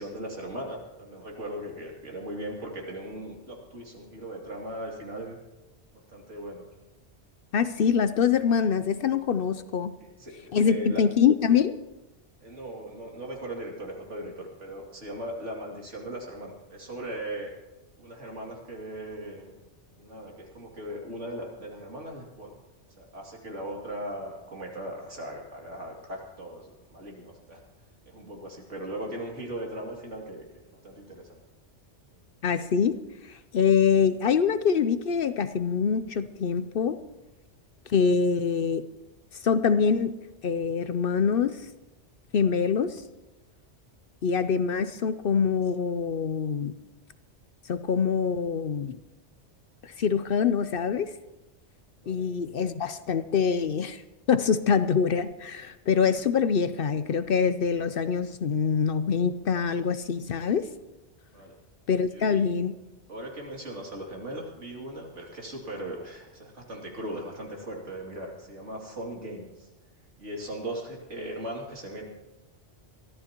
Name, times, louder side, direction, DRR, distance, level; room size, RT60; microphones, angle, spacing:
voice 1, 0.0-5.4 6.1-6.6 10.2-11.0 12.4-17.5 18.0-19.5 19.9-22.5 23.0-27.6 28.1-31.4 52.0-52.2 61.3-61.6 62.1-62.5 63.1-69.7 70.2-72.0, right 1 dB, 80° right, -1 dB, 3.0 m, -38 dB
voice 2, 7.5-9.9 10.5-11.8 32.4-33.0 33.3-37.0 37.9-38.8 39.4-40.2 40.4-41.6 42.3-43.0 44.2-46.7 47.7-49.0 49.8-51.1 52.1-54.0 54.3-60.7 61.9-62.7, left 6 dB, 60° left, 11 dB, 0.7 m, -24 dB
23.0 x 14.5 x 2.9 m, 1.1 s
omnidirectional pair, 1.2 m